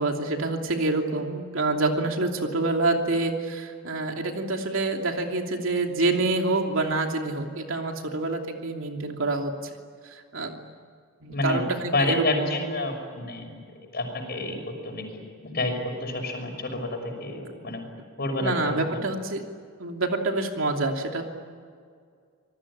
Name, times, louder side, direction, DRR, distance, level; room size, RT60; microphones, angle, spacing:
voice 1, 0.0-9.8 10.0-10.5 11.2-12.5 18.4-19.4 19.8-21.2, right 2 dB, 75° right, 3 dB, 2.9 m, -27 dB
voice 2, 11.3-13.6 13.9-17.8 18.2-18.8, left 2 dB, 50° left, 4 dB, 6.1 m, -29 dB
26.5 x 20.0 x 10.0 m, 2.1 s
head